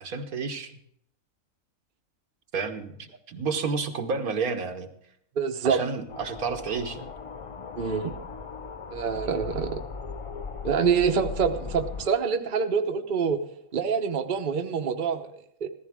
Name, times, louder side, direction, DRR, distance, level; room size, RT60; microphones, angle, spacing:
voice 1, 0.0-0.7 2.5-4.9 5.6-7.1, right 5 dB, 85° right, 5 dB, 1.6 m, -30 dB
voice 2, 5.4-5.8 7.8-8.1 8.9-9.8 10.6-13.4 13.7-15.7, right 6 dB, 40° right, 6 dB, 0.9 m, -26 dB
sound 1, 6.1-12.1, left 5 dB, 55° left, 0.3 m, -38 dB
15.5 x 14.0 x 3.6 m, 0.71 s
omnidirectional pair, 1.5 m